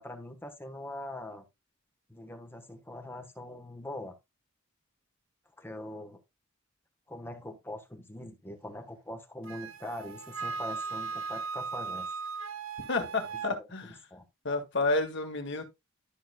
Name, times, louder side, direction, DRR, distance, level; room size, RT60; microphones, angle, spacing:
voice 1, 0.0-1.4 2.1-4.1 5.6-6.2 7.1-12.1 13.3-14.2, left 1 dB, 10° left, 1.2 m, -42 dB
Wind instrument woodwind instrument, 9.5-13.5, right 4 dB, 70° right, 0.8 m, -37 dB
voice 2, 12.9-14.0 14.4-15.6, left 2 dB, 60° left, 1.8 m, -30 dB
12.0 x 6.1 x 2.3 m
head